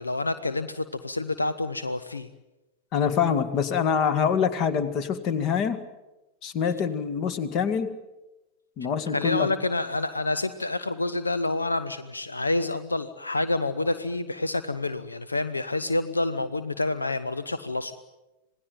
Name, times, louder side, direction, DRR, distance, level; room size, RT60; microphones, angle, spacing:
voice 1, 0.0-2.3 9.1-17.9, left 2 dB, 80° left, 13 dB, 0.9 m, -28 dB
voice 2, 2.9-5.8 6.4-7.9 8.8-9.5, left 7 dB, 40° left, 13 dB, 2.0 m, -25 dB
26.5 x 19.0 x 9.3 m, 1.0 s
figure-of-eight pair, 90°, 0 cm